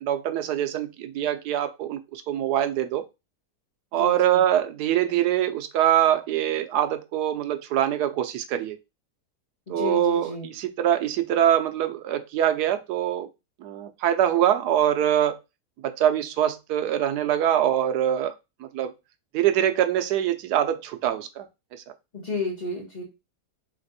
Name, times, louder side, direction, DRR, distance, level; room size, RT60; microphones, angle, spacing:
voice 1, 0.0-3.1 3.9-8.8 9.7-13.3 13.6-15.4 15.8-18.3 18.6-18.9 19.3-21.5 21.7-21.8, right 11 dB, 80° right, 1.1 m, -24 dB
voice 2, 3.9-4.4 9.7-10.5 22.1-23.0, left 2 dB, 30° left, 1.2 m, -32 dB
3.4 x 3.3 x 4.0 m
omnidirectional pair, 1.7 m